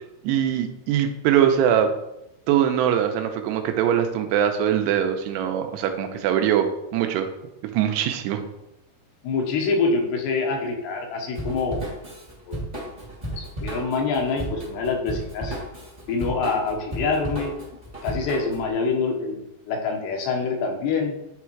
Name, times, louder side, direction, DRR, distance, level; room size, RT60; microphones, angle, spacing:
voice 1, 0.2-1.9 2.5-7.3 7.6-8.4, right 9 dB, 85° right, 6 dB, 2.9 m, -22 dB
voice 2, 9.2-11.8 12.5-12.6 13.4-15.6 16.1-17.5 18.0-21.2, left 4 dB, 80° left, 1 dB, 3.3 m, -25 dB
Drum kit / Drum, 11.3-18.7, right 1 dB, 30° right, 0.7 m, -34 dB
10.5 x 3.6 x 4.5 m, 0.86 s
omnidirectional pair, 4.9 m